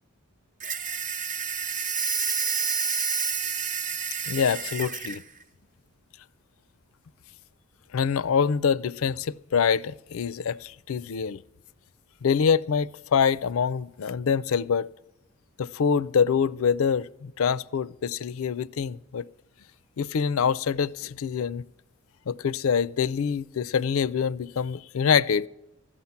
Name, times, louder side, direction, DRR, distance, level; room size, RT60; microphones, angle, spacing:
sound 1, 0.6-5.2, right 6 dB, 35° right, 0.8 m, -29 dB
voice 1, 4.3-5.2 7.9-11.4 12.2-14.9 15.6-19.3 20.0-21.6 22.3-25.5, left 6 dB, 70° left, 0.4 m, -25 dB
15.0 x 5.8 x 9.5 m
head